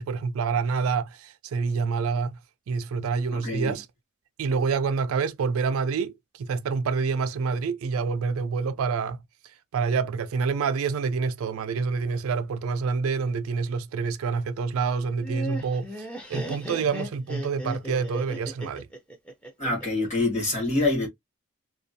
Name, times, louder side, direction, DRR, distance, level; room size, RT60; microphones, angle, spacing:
voice 1, 0.0-2.4 2.7-3.9 4.4-9.2 9.4-18.9, right 5 dB, 70° right, 0.3 m, -27 dB
voice 2, 3.3-3.7 19.6-21.1, left 2 dB, 30° left, 1.3 m, -26 dB
Laughter, 15.0-20.1, right 1 dB, 5° left, 0.5 m, -36 dB
2.4 x 2.2 x 2.6 m
head